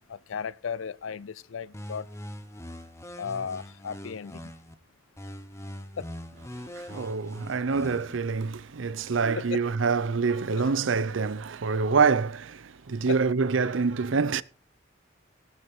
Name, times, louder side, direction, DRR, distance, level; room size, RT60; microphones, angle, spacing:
voice 1, 0.1-2.1 3.2-4.4 6.0-6.1 9.3-9.7 10.5-10.7 13.1-13.2, left 6 dB, 90° left, 0.5 m, -35 dB
sound 1, 1.7-4.7 5.2-8.2, equal, 15° left, 1.0 m, -42 dB
voice 2, 6.7-14.4, right 5 dB, 80° right, 0.6 m, -26 dB
18.0 x 6.4 x 4.4 m
head